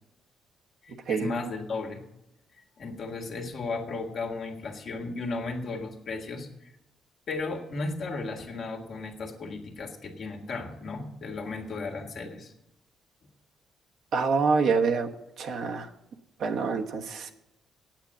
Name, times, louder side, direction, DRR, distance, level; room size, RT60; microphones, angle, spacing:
voice 1, 0.8-2.1 2.8-6.7 7.3-12.5, left 3 dB, 55° left, 2 dB, 1.8 m, -35 dB
voice 2, 14.1-15.1 15.4-15.9 16.4-17.3, right 4 dB, 70° right, 4 dB, 1.1 m, -26 dB
8.9 x 8.3 x 8.7 m, 0.90 s
cardioid pair, 90°, 0 cm